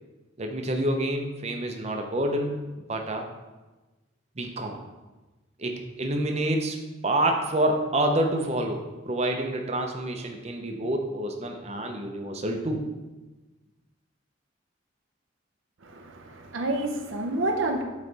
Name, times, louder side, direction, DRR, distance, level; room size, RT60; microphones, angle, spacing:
voice 1, 0.4-2.6 2.9-3.3 4.4-4.8 5.6-6.8 7.0-12.8, right 1 dB, 35° right, 3 dB, 0.6 m, -27 dB
voice 2, 15.8-17.8, right 2 dB, 80° right, 4 dB, 0.6 m, -29 dB
8.0 x 3.3 x 3.9 m, 1.2 s
head